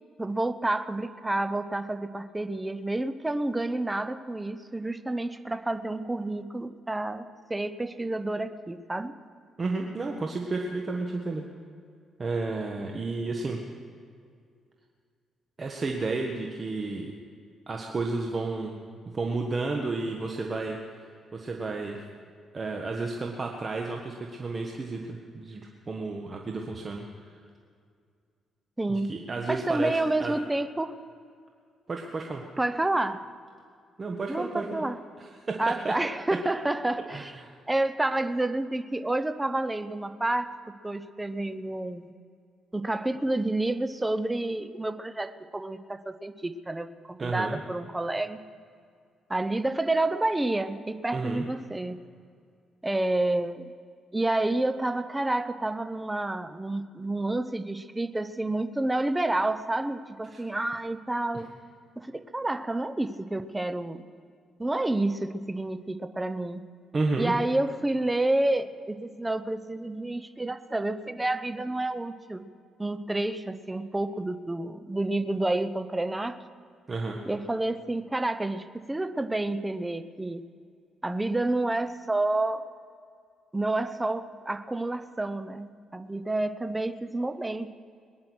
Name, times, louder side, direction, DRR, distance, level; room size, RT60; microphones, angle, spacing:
voice 1, 0.2-9.1 28.8-29.1 29.5-31.0 32.6-33.3 34.3-35.0 35.6-37.4 37.7-40.5 40.8-42.1 42.7-48.4 49.3-52.0 52.8-53.6 54.1-61.5 62.0-64.0 64.6-66.6 67.2-72.4 72.8-76.4 77.3-80.4 81.0-82.6 83.5-87.7, right 2 dB, 15° right, 12 dB, 0.8 m, -29 dB
voice 2, 9.6-11.4 12.2-13.6 15.6-17.1 17.7-18.7 19.1-20.8 21.3-22.0 22.5-27.0 28.9-29.9 30.2-30.3 31.9-32.4 34.0-34.8 35.2-35.9 37.1-37.5 47.2-47.6 51.1-51.5 60.3-60.5 66.9-67.3 76.9-77.2, right 3 dB, 35° right, 1 dB, 1.4 m, -32 dB
21.0 x 10.5 x 6.3 m, 2.2 s
cardioid pair, 90°, 0 cm